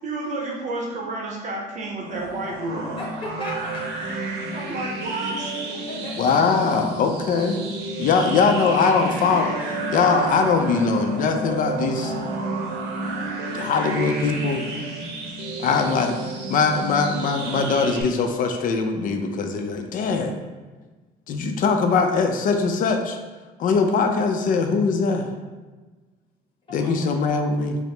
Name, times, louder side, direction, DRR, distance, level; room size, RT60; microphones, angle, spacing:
voice 1, 0.0-3.0 4.5-5.5, right 2 dB, 45° right, -1 dB, 0.7 m, -30 dB
sound 1, 2.0-18.0, right 2 dB, 80° right, 0.7 m, -31 dB
voice 2, 3.0-3.9 5.7-6.2 26.7-27.3, left 1 dB, 30° left, -4 dB, 1.3 m, -36 dB
voice 3, 6.2-7.7 8.0-12.1 13.5-14.7 15.6-16.2 16.5-20.3 21.3-23.2 23.6-25.3 26.7-27.8, left 4 dB, 55° left, 5 dB, 0.4 m, -21 dB
4.5 x 2.0 x 3.2 m, 1.3 s
cardioid pair, 110°, 17 cm